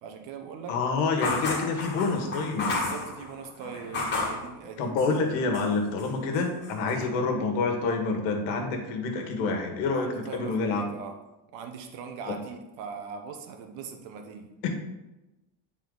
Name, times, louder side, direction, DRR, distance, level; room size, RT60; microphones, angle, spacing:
voice 1, 0.0-0.8 2.7-4.9 6.9-7.1 9.9-11.1 11.5-14.5, right 6 dB, 60° right, 5 dB, 1.1 m, -40 dB
voice 2, 0.7-2.9 4.8-10.8 12.3-12.4 14.6-14.7, left 4 dB, 90° left, 3 dB, 1.6 m, -27 dB
sound 1, 1.2-4.5 5.0-5.7 6.0-7.0, left 3 dB, 20° left, 1.5 m, -32 dB
9.5 x 4.1 x 3.9 m, 1.0 s
cardioid pair, 175°, 48 cm